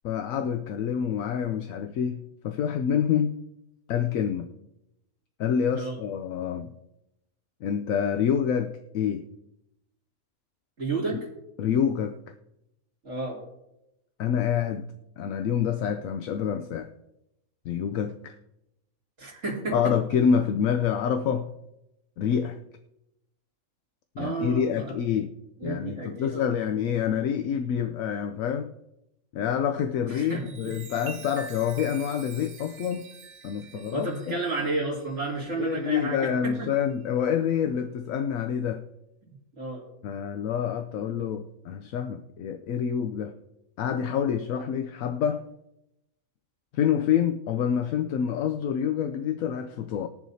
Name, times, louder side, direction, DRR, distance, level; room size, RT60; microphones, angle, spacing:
voice 1, 0.0-3.4 3.9-4.5 5.4-6.7 7.6-9.3 11.6-12.2 14.2-16.9 17.6-18.3 19.7-21.5 22.2-22.6 24.2-25.4 25.6-28.7 29.3-33.1 33.4-34.4 35.6-38.9 40.0-43.4 43.8-45.5 46.7-50.1, left 8 dB, 75° left, 1.0 m, -27 dB
voice 2, 10.8-11.2 13.0-13.4 19.2-19.8 24.2-25.0 25.6-26.5 30.1-30.7 33.7-36.7 39.2-39.8, right 3 dB, 55° right, 3.1 m, -32 dB
Chime, 30.2-36.2 36.8-37.0, right 7 dB, 75° right, 1.3 m, -46 dB
20.5 x 7.0 x 2.7 m
omnidirectional pair, 1.4 m